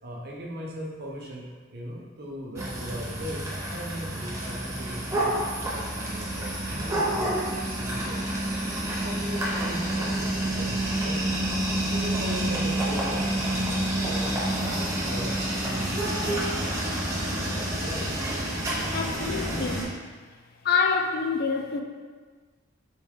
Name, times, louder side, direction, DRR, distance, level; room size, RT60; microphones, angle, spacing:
voice 1, 0.0-8.2 9.0-11.4 11.9-18.2, equal, 50° right, -2 dB, 0.7 m, -39 dB
sound 1, 2.6-19.8, right 1 dB, 15° right, 0.7 m, -28 dB
voice 2, 18.9-19.9 20.6-21.8, left 5 dB, 45° left, 3 dB, 0.3 m, -26 dB
4.6 x 2.7 x 3.6 m, 1.5 s
head